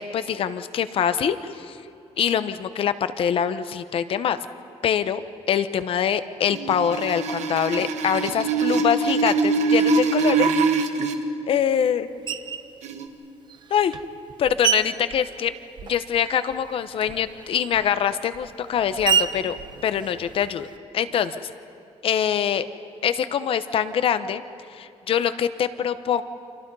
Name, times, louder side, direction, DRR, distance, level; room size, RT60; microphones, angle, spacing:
voice 1, 0.0-1.8 2.2-4.4 4.8-5.2 5.5-10.8 11.5-12.1 13.7-14.0 14.4-15.5 15.8-19.6 19.8-20.7 20.9-21.5 22.0-22.6 23.0-24.4 24.7-26.2, left 8 dB, 55° left, 12 dB, 0.9 m, -24 dB
sound 1, 6.5-11.2 12.8-13.1, right 4 dB, 85° right, 1.6 m, -23 dB
Screech, 12.3-12.7 13.5-16.2 16.5-20.8, right 8 dB, 40° right, 0.8 m, -30 dB
30.0 x 26.0 x 5.5 m, 2.7 s
cardioid pair, 180°, 11 cm